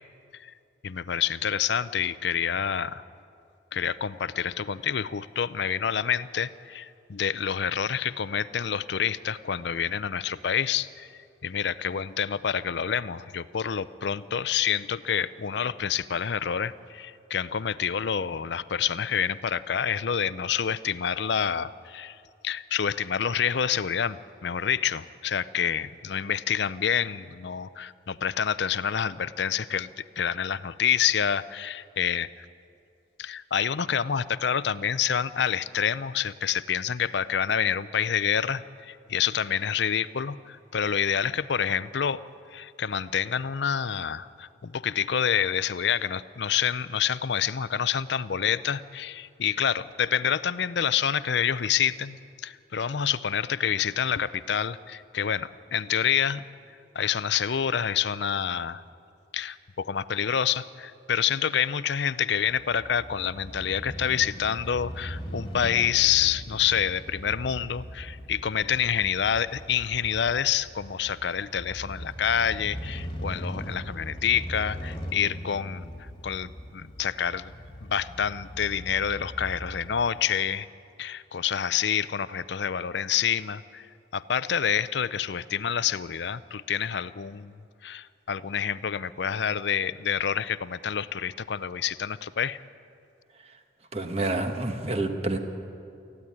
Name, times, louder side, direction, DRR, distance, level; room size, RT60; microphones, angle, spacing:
voice 1, 0.8-3.0 3.7-11.1 11.4-22.2 22.4-24.2 24.4-32.3 33.2-42.2 42.5-56.4 56.9-58.8 59.3-77.5 77.8-80.7 81.0-87.5 87.8-92.6, left 8 dB, 70° left, 16 dB, 0.5 m, -27 dB
Crow / Motorcycle, 62.4-80.3, equal, 25° left, 1.8 m, -40 dB
voice 2, 93.9-95.4, right 2 dB, 35° right, 6 dB, 1.4 m, -28 dB
18.0 x 15.0 x 9.8 m, 2.5 s
head